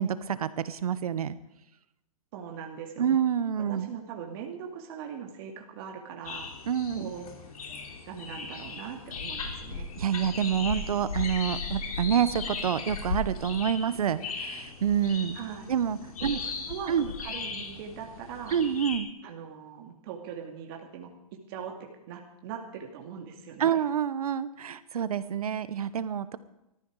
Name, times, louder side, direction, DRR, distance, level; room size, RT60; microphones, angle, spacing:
voice 1, 0.0-1.4 3.0-3.9 6.7-7.1 10.0-15.4 15.7-16.4 16.9-17.1 18.5-19.1 23.6-26.4, right 8 dB, 80° right, 15 dB, 1.1 m, -27 dB
voice 2, 2.3-3.2 3.7-6.5 6.9-7.3 8.1-9.9 15.3-15.7 16.2-18.6 19.2-21.1 21.5-23.7, right 7 dB, 40° right, 1 dB, 2.5 m, -41 dB
sound 1, 6.3-19.0, left 4 dB, 75° left, 3.4 m, -37 dB
18.5 x 14.0 x 4.8 m, 0.89 s
hypercardioid pair, 155°, 19 cm